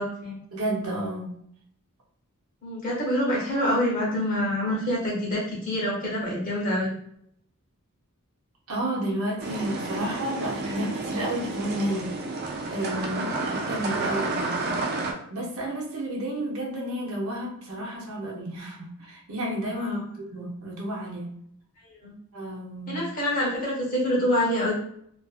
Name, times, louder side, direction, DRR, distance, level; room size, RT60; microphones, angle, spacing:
voice 1, 0.0-0.4 2.6-6.9 13.0-13.3 19.8-20.0 21.8-22.1 22.9-24.7, left 1 dB, 40° left, -4 dB, 0.9 m, -26 dB
voice 2, 0.5-1.4 8.7-12.1 12.7-14.7 15.3-21.3 22.3-23.0, right 1 dB, 75° right, -2 dB, 0.8 m, -31 dB
sound 1, 9.4-15.1, right 3 dB, 45° right, 0.4 m, -30 dB
2.4 x 2.4 x 2.4 m, 0.68 s
head